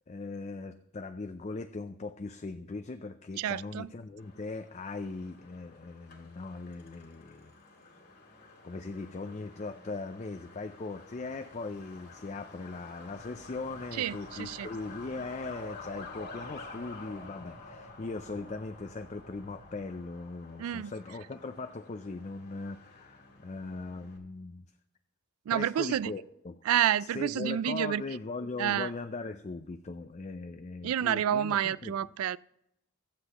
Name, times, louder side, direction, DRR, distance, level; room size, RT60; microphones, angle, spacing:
voice 1, 0.1-7.5 8.6-24.7 25.5-26.6 27.0-31.9, left 3 dB, 35° left, 0.4 m, -39 dB
voice 2, 3.4-3.9 13.9-14.7 20.6-20.9 25.5-26.1 26.7-28.0 28.6-28.9 30.8-32.4, right 10 dB, 85° right, 0.3 m, -29 dB
Truck, 4.2-24.2, left 3 dB, 50° left, 2.2 m, -50 dB
sound 1, 13.1-19.9, equal, 45° right, 1.6 m, -57 dB
23.0 x 7.7 x 3.0 m
head